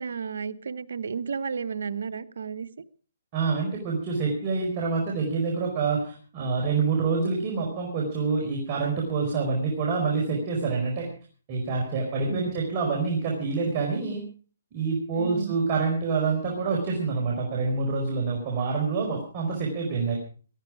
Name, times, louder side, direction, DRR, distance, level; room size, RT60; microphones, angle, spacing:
voice 1, 0.0-2.7 12.0-12.5 15.2-15.5, right 6 dB, 75° right, 12 dB, 1.1 m, -33 dB
voice 2, 3.3-11.1 11.5-14.2 14.7-20.2, right 4 dB, 30° right, -1 dB, 4.8 m, -27 dB
18.0 x 14.0 x 4.9 m, 0.40 s
hypercardioid pair, 155°, 0 cm